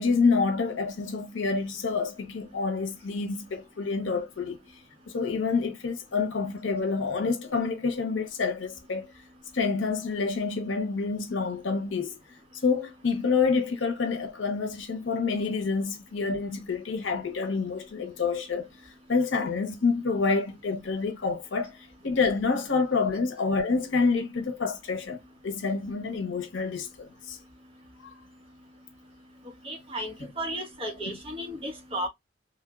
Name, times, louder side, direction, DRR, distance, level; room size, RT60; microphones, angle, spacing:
voice 1, 0.0-4.6 5.1-9.1 9.5-12.2 12.6-18.7 19.1-21.7 22.0-25.2 25.4-27.4 28.0-28.1 31.1-31.2, left 4 dB, 80° left, 0.7 m, -28 dB
voice 2, 29.6-32.1, right 1 dB, 30° right, 0.9 m, -34 dB
3.1 x 2.0 x 2.2 m
head